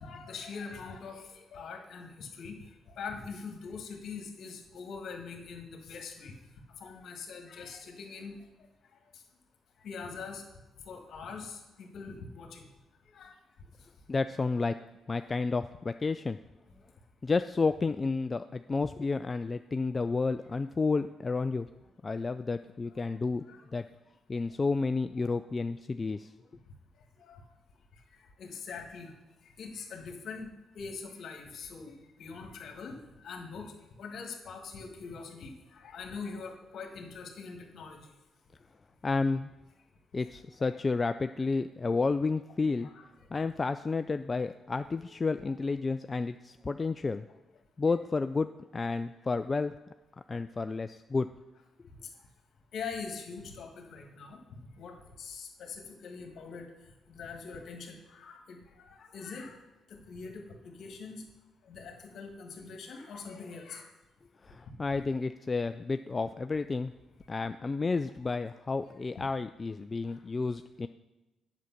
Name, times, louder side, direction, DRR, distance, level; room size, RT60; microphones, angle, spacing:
voice 1, 0.0-2.6 2.9-6.3 6.8-8.4 9.1-9.2 9.8-10.4 10.8-12.6 13.1-13.3 15.1-15.3 23.5-23.6 25.2-25.4 27.2-27.4 28.1-29.1 29.4-30.5 30.7-38.1 40.6-40.8 42.8-43.0 52.7-56.7 57.1-59.5 59.9-61.2 61.6-63.9 64.9-65.0 70.0-70.2, left 5 dB, 65° left, 4 dB, 1.6 m, -43 dB
voice 2, 14.1-14.7 15.1-16.4 17.2-21.7 22.0-23.4 23.7-23.8 24.3-26.3 39.0-39.5 40.1-42.9 43.3-47.3 47.8-48.5 48.7-49.7 50.3-51.3 64.4-66.9 67.3-70.9, left 4 dB, 35° left, 10 dB, 0.3 m, -31 dB
8.3 x 6.3 x 5.9 m, 1.0 s
supercardioid pair, 60°, 0 cm